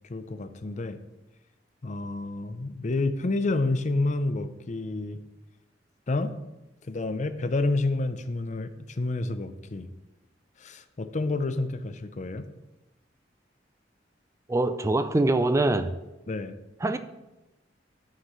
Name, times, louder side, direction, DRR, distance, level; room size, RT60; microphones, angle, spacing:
voice 1, 0.1-1.0 1.8-5.2 6.1-6.3 6.9-9.9 10.6-12.5 16.3-16.6, left 2 dB, 40° left, 0.6 m, -29 dB
voice 2, 14.5-15.9 16.8-17.0, right 2 dB, 15° right, 0.3 m, -23 dB
13.5 x 6.5 x 3.1 m
head